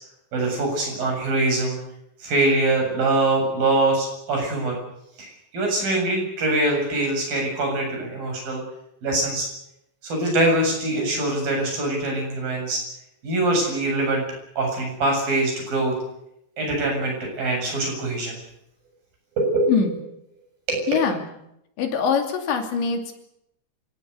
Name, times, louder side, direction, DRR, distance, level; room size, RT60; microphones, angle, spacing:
voice 1, 0.3-1.8 2.2-4.8 5.2-8.6 9.0-9.5 10.0-12.8 13.2-14.2 14.6-15.9 16.6-18.3 19.4-19.7 20.7-20.8, right 2 dB, 50° right, 1 dB, 9.3 m, -23 dB
voice 2, 20.9-21.3 21.8-23.1, left 6 dB, 80° left, 5 dB, 5.0 m, -23 dB
27.0 x 17.5 x 8.2 m, 0.80 s
omnidirectional pair, 5.1 m